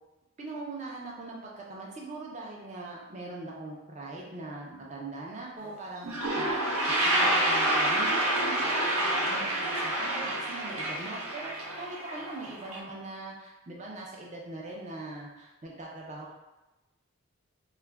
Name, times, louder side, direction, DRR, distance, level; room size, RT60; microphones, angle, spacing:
voice 1, 0.4-6.2 7.1-16.3, right 2 dB, 30° right, -3 dB, 0.5 m, -41 dB
Toilet flush, 5.6-5.7 6.0-12.8, right 1 dB, 75° right, 0.7 m, -28 dB
2.4 x 2.1 x 3.3 m, 1.0 s
head